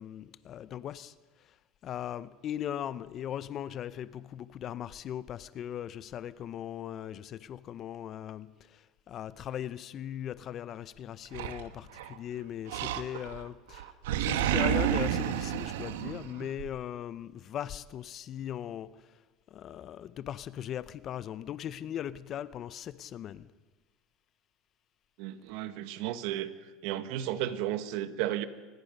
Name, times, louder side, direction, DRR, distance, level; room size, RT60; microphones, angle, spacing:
voice 1, 0.0-1.6 1.8-19.2 19.5-23.5, left 10 dB, 40° left, 0.7 m, -39 dB
Animal, 11.3-12.2 12.7-13.5 13.7-16.7, right 11 dB, 90° right, 1.2 m, -30 dB
voice 2, 25.2-26.5 26.8-28.4, right 12 dB, 65° right, 1.4 m, -33 dB
25.0 x 20.5 x 5.4 m
supercardioid pair, 125°, 0 cm